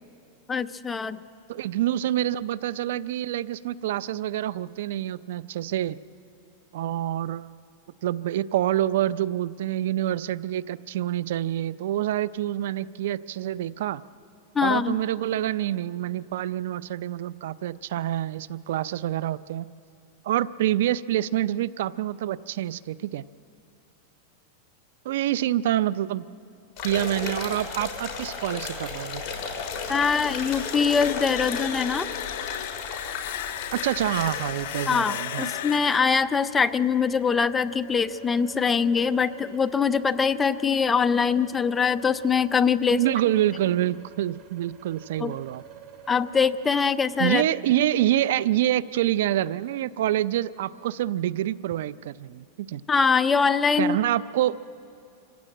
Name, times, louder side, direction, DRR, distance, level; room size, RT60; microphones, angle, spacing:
voice 1, 0.5-1.2 14.6-15.0 29.9-32.1 34.9-43.0 45.2-45.3 46.1-47.4 52.9-54.0, left 6 dB, 15° left, 11 dB, 0.5 m, -23 dB
voice 2, 1.5-6.0 6.7-7.5 8.0-14.0 14.6-19.7 20.2-23.2 25.0-26.3 26.8-29.2 33.7-35.5 42.9-45.6 47.2-52.8 53.8-54.6, right 13 dB, 70° right, 18 dB, 0.5 m, -27 dB
sound 1, 26.8-34.8, left 5 dB, 30° left, 3.9 m, -34 dB
sound 2, 29.1-37.9, left 12 dB, 65° left, 0.8 m, -36 dB
sound 3, 33.5-47.3, right 9 dB, 40° right, 2.2 m, -47 dB
25.5 x 15.5 x 8.8 m, 2.7 s
supercardioid pair, 145°, 0 cm